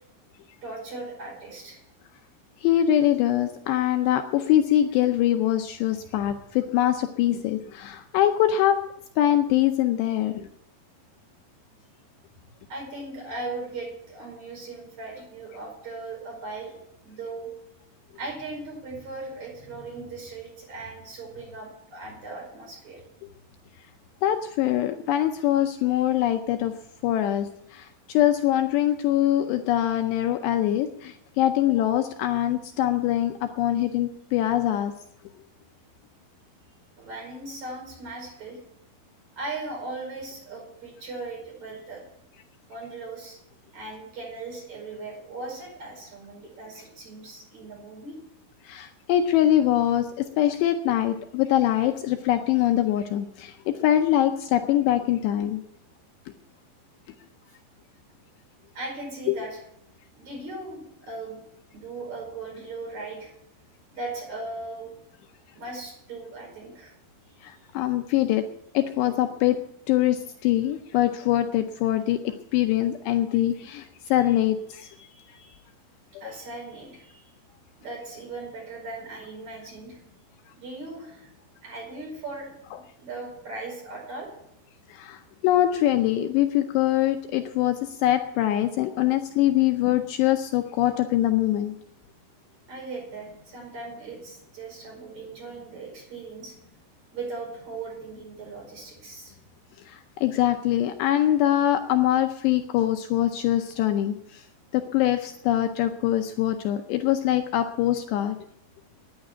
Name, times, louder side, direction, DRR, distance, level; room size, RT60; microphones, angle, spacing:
voice 1, 0.6-1.8 12.7-16.8 17.0-17.5 18.1-23.0 37.0-38.6 39.4-42.0 42.7-43.4 43.7-48.1 58.7-59.6 60.2-61.4 61.7-63.3 63.9-64.9 65.5-66.9 74.8-75.6 76.2-77.3 77.8-80.0 80.6-81.3 81.6-82.5 83.0-84.3 92.7-96.5 97.1-99.3, right 3 dB, 40° right, -1 dB, 6.1 m, -38 dB
voice 2, 2.6-8.8 9.2-10.5 24.2-26.7 27.0-34.9 48.7-55.6 59.3-59.4 67.4-68.4 68.7-69.6 69.9-74.9 76.2-76.3 84.9-91.8 99.9-104.4 104.7-108.4, left 12 dB, 80° left, 7 dB, 2.7 m, -23 dB
11.5 x 9.9 x 9.2 m, 0.77 s
omnidirectional pair, 5.4 m